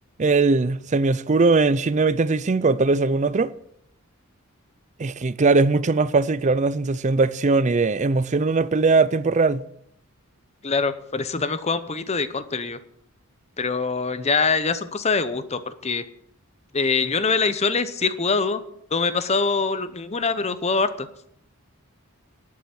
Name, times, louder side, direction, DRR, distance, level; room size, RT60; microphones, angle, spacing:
voice 1, 0.2-3.5 5.0-9.6, right 3 dB, 30° right, 0.5 m, -20 dB
voice 2, 10.6-12.8 13.6-16.0 16.7-18.6 18.9-21.1, left 4 dB, 30° left, 0.8 m, -24 dB
11.5 x 8.6 x 7.7 m
head